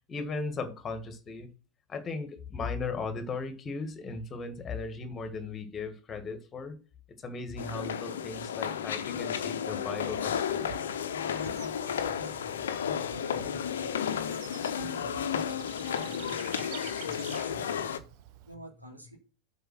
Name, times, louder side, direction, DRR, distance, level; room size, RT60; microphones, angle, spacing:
voice 1, 0.1-1.5 1.9-6.8 7.2-10.7, left 4 dB, 20° left, 8 dB, 1.9 m, -37 dB
sound 1, 7.6-18.0, left 8 dB, 60° left, 0.9 m, -33 dB
Bird / Insect, 10.0-18.5, right 12 dB, 45° right, 1.0 m, -49 dB
voice 2, 11.7-14.4 14.8-18.1 18.4-19.2, equal, 85° right, 0 dB, 3.1 m, -49 dB
7.9 x 5.3 x 6.2 m, 0.35 s
figure-of-eight pair, 90°, 0 cm